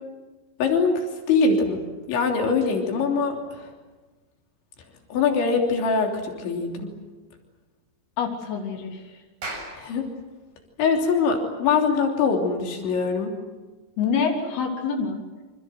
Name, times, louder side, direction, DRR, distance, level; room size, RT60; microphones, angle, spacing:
voice 1, 0.6-1.8 2.1-3.7 5.1-6.9 9.8-10.1 10.8-13.4, left 4 dB, 85° left, 2 dB, 5.5 m, -23 dB
voice 2, 8.2-9.0 14.0-15.2, left 6 dB, 60° left, 2 dB, 5.2 m, -26 dB
Clapping, 9.3-14.1, right 2 dB, 50° right, 9.0 m, -42 dB
28.0 x 26.0 x 8.0 m, 1.3 s
omnidirectional pair, 5.1 m